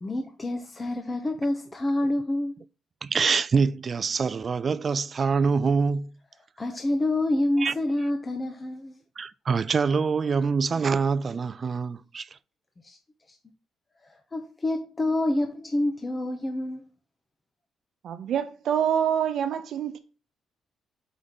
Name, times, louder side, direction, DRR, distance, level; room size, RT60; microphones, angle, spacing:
voice 1, 0.0-2.6 6.6-8.9 12.8-13.0 13.3-13.4 14.1-16.8, left 1 dB, 25° left, 0.8 m, -27 dB
voice 2, 3.0-6.2 7.6-7.7 9.2-12.4, right 5 dB, 40° right, 0.3 m, -25 dB
voice 3, 18.0-20.0, right 9 dB, 70° right, 0.8 m, -26 dB
5.0 x 4.3 x 4.9 m
cardioid pair, 90°, 0 cm